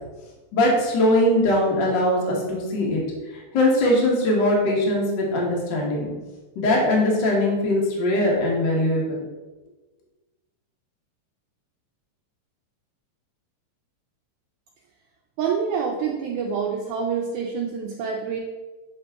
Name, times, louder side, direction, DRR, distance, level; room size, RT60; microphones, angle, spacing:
voice 1, 0.5-3.0 3.3-6.1 6.5-9.2, left 1 dB, 60° left, -2 dB, 1.2 m, -21 dB
voice 2, 15.4-18.4, right 6 dB, 80° right, 0 dB, 1.9 m, -26 dB
7.3 x 3.9 x 3.5 m, 1.2 s
omnidirectional pair, 3.8 m